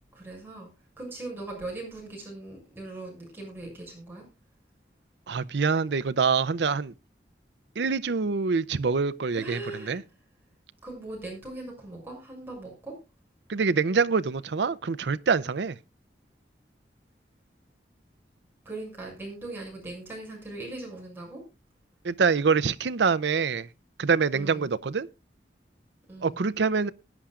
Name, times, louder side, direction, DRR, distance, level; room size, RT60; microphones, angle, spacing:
voice 1, 0.1-0.7 1.0-4.2 9.3-10.0 10.8-13.0 18.6-21.4 24.3-24.7 26.1-26.4, right 2 dB, 10° right, 6.5 m, -40 dB
voice 2, 5.3-6.9 7.8-10.0 13.5-15.7 22.0-23.7 24.0-25.1 26.2-26.9, right 5 dB, 80° right, 0.6 m, -25 dB
20.0 x 10.0 x 2.4 m
head